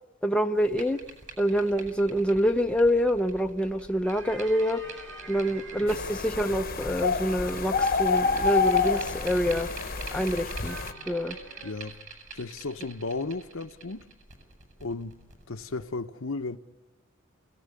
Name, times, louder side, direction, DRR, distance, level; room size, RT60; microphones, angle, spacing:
voice 1, 0.2-1.0 1.4-4.8 5.3-9.7 10.1-10.8 11.1-11.4, equal, 5° left, 0.8 m, -26 dB
sound 1, 0.5-15.8, right 4 dB, 40° right, 7.9 m, -46 dB
sound 2, 4.0-11.7, right 1 dB, 65° right, 6.9 m, -47 dB
sound 3, 5.9-10.9, left 5 dB, 45° left, 1.1 m, -28 dB
voice 2, 11.6-11.9 12.3-14.1 14.8-15.2 15.5-16.6, left 3 dB, 75° left, 1.0 m, -34 dB
29.0 x 17.5 x 9.8 m
head